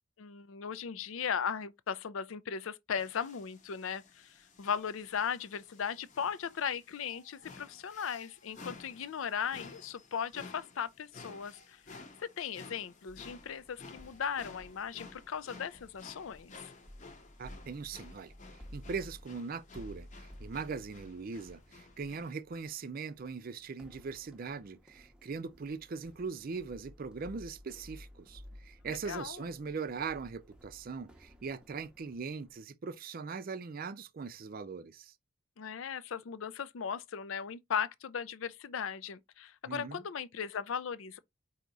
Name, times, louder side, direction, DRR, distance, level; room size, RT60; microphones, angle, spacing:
voice 1, 0.2-11.8 12.2-16.7 28.9-29.4 35.6-41.2, left 7 dB, 75° left, 0.5 m, -37 dB
sound 1, 3.0-22.3, left 3 dB, 35° left, 0.8 m, -54 dB
sound 2, 13.1-32.6, equal, 5° right, 0.7 m, -55 dB
voice 2, 17.4-18.3 18.7-35.1 39.7-40.0, right 5 dB, 45° right, 0.4 m, -40 dB
4.7 x 2.8 x 3.9 m
head